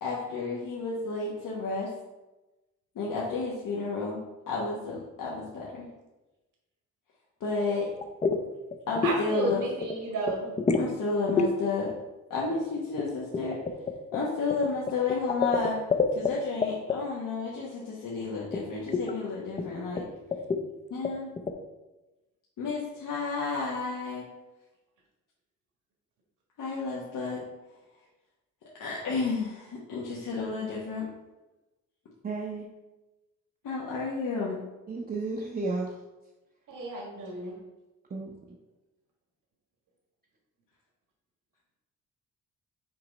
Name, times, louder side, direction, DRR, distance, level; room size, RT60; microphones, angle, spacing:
voice 1, 0.0-1.9 2.9-4.2 4.5-5.9 7.4-7.9 8.9-9.6 10.8-11.9 12.3-13.6 14.1-15.8 16.1-20.0 20.9-21.3 22.6-24.3 26.6-27.4 28.8-31.1 33.6-34.6, left 4 dB, 85° left, -5 dB, 1.1 m, -31 dB
sound 1, 8.0-8.4 8.7-9.2 9.5-10.0 10.3-10.9 11.3-11.5 13.0-16.3 16.6-17.0 18.5-18.6 18.9-19.1 19.6-19.7 20.0-20.1 20.3-20.6 21.0-21.5, left 4 dB, 25° left, 0.4 m, -27 dB
voice 2, 9.0-10.5 36.7-37.5, right 2 dB, 80° right, -2 dB, 1.5 m, -32 dB
voice 3, 32.2-32.7 34.9-35.9 38.1-38.3, right 3 dB, 30° right, -2 dB, 0.5 m, -32 dB
5.8 x 3.2 x 5.1 m, 1.0 s
wide cardioid pair, 160°, 31 cm